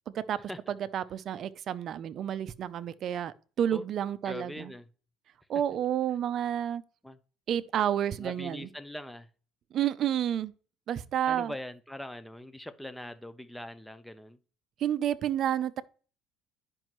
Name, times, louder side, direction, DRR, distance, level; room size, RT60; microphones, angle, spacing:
voice 1, 0.7-4.7 5.5-6.8 7.5-8.7 9.7-10.5 10.9-11.5 14.8-15.8, right 10 dB, 50° right, 0.5 m, -30 dB
voice 2, 4.2-4.9 7.0-7.2 8.2-9.3 11.3-14.4, left 1 dB, 5° left, 0.7 m, -42 dB
10.5 x 5.3 x 3.0 m
cardioid pair, 120°, 0 cm